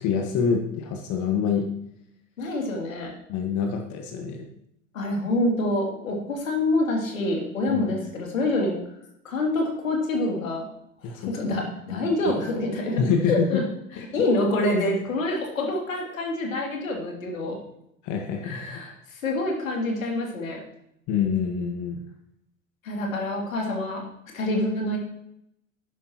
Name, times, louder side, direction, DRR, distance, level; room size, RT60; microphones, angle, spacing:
voice 1, 0.0-1.7 3.3-4.5 7.7-7.8 11.0-11.6 11.9-12.0 13.0-13.5 14.1-14.2 18.0-18.8 21.1-22.0, left 6 dB, 45° left, 3 dB, 1.6 m, -26 dB
voice 2, 2.4-3.2 4.9-8.8 9.2-10.7 11.1-13.6 13.9-17.6 18.4-20.6 22.8-24.1 24.3-25.0, left 2 dB, 75° left, 0 dB, 2.9 m, -26 dB
11.0 x 11.0 x 3.0 m, 0.77 s
figure-of-eight pair, 75°, 40 cm